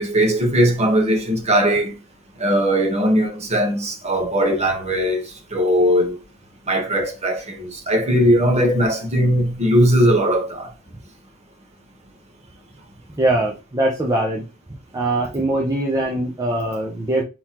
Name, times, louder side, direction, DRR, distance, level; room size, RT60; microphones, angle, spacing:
voice 1, 0.0-1.9 2.4-5.2 5.5-6.1 6.7-10.7, equal, 30° right, 1.3 m, -19 dB
voice 2, 13.2-14.4 14.9-17.2, right 1 dB, 15° right, 0.7 m, -22 dB
4.2 x 3.9 x 3.0 m
head